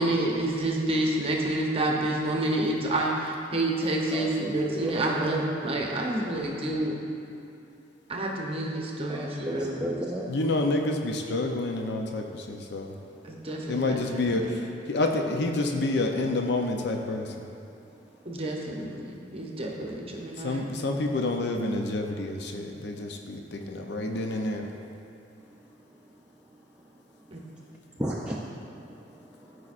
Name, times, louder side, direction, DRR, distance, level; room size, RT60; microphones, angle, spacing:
voice 1, 0.0-6.9 8.1-9.9 13.2-14.6 18.2-20.7 27.3-27.4, right 1 dB, 35° right, -1 dB, 0.7 m, -29 dB
voice 2, 3.8-5.3 9.1-10.3 28.0-29.7, right 1 dB, 5° right, -5 dB, 0.5 m, -35 dB
voice 3, 10.3-12.9 13.7-14.6 14.9-17.3 20.4-24.6, left 2 dB, 65° left, 3 dB, 0.6 m, -28 dB
13.5 x 4.9 x 2.5 m, 2.8 s
head